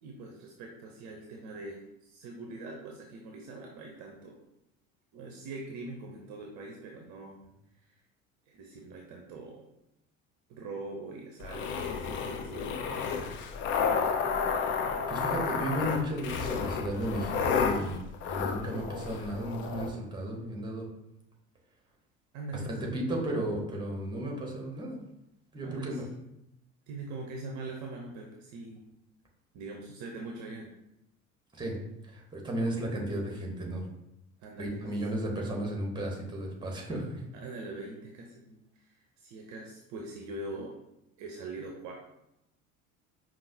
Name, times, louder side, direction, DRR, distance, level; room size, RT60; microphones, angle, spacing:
voice 1, 0.0-4.4 5.1-7.4 7.9-8.0 8.5-9.6 10.5-13.3 22.3-23.0 25.6-26.0 26.9-28.9 29.5-30.8 34.4-34.8 37.3-40.8 41.2-41.9, right 2 dB, 45° right, 0 dB, 0.7 m, -43 dB
sound 1, 11.4-19.9, left 6 dB, 30° left, 0.4 m, -31 dB
voice 2, 15.1-20.9 22.7-25.0 25.5-26.0 31.5-31.8 32.1-33.8 34.6-37.2, right 1 dB, 10° right, 0 dB, 1.0 m, -34 dB
5.2 x 2.5 x 2.7 m, 0.86 s
figure-of-eight pair, 65°, 42 cm